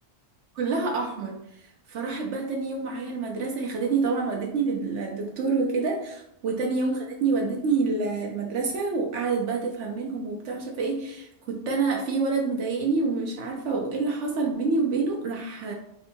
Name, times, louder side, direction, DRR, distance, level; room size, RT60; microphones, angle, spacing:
voice 1, 0.6-15.7, right 4 dB, 85° right, 0 dB, 1.0 m, -27 dB
3.9 x 2.7 x 4.3 m, 0.76 s
omnidirectional pair, 1.2 m